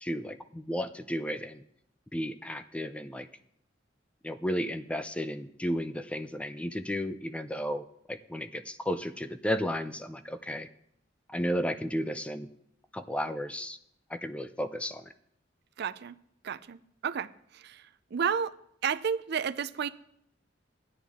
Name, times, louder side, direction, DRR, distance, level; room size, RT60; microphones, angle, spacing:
voice 1, 0.0-1.6 2.1-3.3 4.2-10.7 11.3-12.5 12.9-13.8 14.1-15.1, equal, 5° left, 10 dB, 0.4 m, -33 dB
voice 2, 15.8-16.2 16.4-17.3 17.5-17.8 18.1-18.5 18.8-19.9, right 7 dB, 60° right, 14 dB, 0.4 m, -31 dB
13.0 x 10.0 x 3.6 m, 0.72 s
head